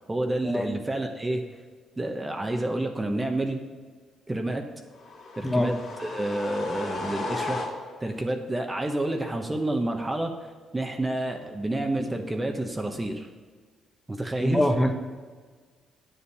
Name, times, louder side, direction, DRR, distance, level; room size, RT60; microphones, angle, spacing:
voice 1, 0.1-1.4 2.0-3.6 4.3-4.7 5.4-5.7 6.0-7.6 8.0-10.3 10.7-13.3 14.1-14.7, right 1 dB, 20° right, 3 dB, 1.0 m, -29 dB
sound 1, 5.0-8.2, left 2 dB, 70° left, 2.3 m, -35 dB
voice 2, 14.4-14.9, left 1 dB, 10° left, 4 dB, 1.2 m, -23 dB
9.1 x 7.1 x 5.5 m, 1.5 s
cardioid pair, 90°, 0 cm